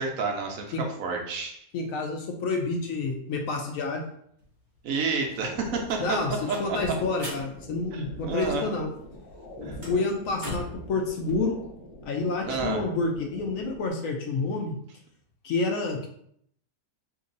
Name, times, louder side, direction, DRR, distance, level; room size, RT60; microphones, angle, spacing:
voice 1, 0.0-1.6 4.8-6.6 7.9-8.7 9.6-9.8 12.4-12.8, right 4 dB, 70° right, 1 dB, 0.9 m, -30 dB
voice 2, 1.7-4.0 6.0-8.9 9.9-11.6 12.1-14.8 15.4-16.1, left 3 dB, 70° left, 2 dB, 0.9 m, -29 dB
sound 1, 4.4-4.5 4.8-8.7 9.0-10.9, equal, 35° right, 1.0 m, -41 dB
sound 2, 5.7-13.9, left 1 dB, 20° left, 1.4 m, -42 dB
2.8 x 2.7 x 3.8 m, 0.68 s
omnidirectional pair, 1.6 m